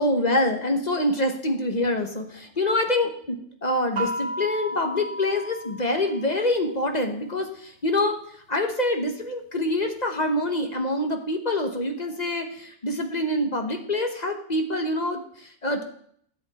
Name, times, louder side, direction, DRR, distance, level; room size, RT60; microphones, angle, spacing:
voice 1, 0.0-8.2 8.5-15.8, left 1 dB, 30° left, 5 dB, 1.1 m, -26 dB
sound 1, 4.0-6.7, right 1 dB, 80° right, 2.5 m, -33 dB
13.0 x 7.9 x 4.2 m, 0.64 s
omnidirectional pair, 1.6 m